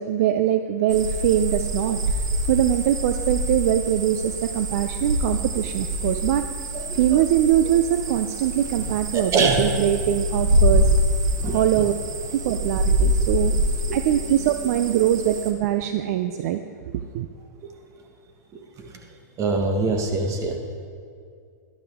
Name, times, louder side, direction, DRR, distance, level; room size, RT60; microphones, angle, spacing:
voice 1, 0.0-6.5 6.9-10.9 11.5-11.9 12.3-13.5 13.9-16.6 16.9-17.3, right 11 dB, 60° right, 8 dB, 0.5 m, -22 dB
sound 1, 0.9-15.5, equal, 85° right, 1.3 m, -25 dB
voice 2, 6.7-7.2 9.1-9.7 11.4-11.8 12.4-12.6 13.5-13.6 13.9-14.0 17.6-17.7 18.8-19.0 19.4-20.6, right 4 dB, 30° right, 3 dB, 1.6 m, -24 dB
12.0 x 12.0 x 3.6 m, 2.3 s
hypercardioid pair, 120°, 10 cm